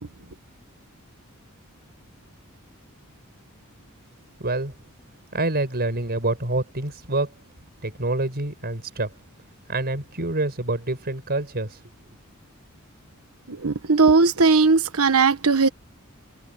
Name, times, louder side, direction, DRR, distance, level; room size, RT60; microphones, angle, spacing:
voice 1, 4.4-4.7 5.3-7.3 7.8-9.1 9.7-11.8, right 2 dB, 45° right, 5.1 m, -26 dB
voice 2, 13.5-15.7, right 4 dB, 75° right, 1.4 m, -18 dB
head